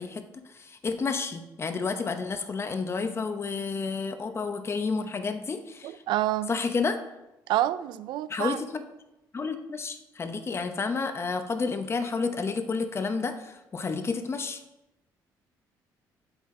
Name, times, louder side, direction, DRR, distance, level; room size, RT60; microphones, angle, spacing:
voice 1, 0.0-6.0 6.5-7.0 8.3-8.8 9.3-14.6, left 4 dB, 35° left, 0.9 m, -30 dB
voice 2, 5.8-6.5 7.5-8.6, right 14 dB, 80° right, 0.4 m, -28 dB
8.1 x 7.9 x 3.7 m
cardioid pair, 90°, 8 cm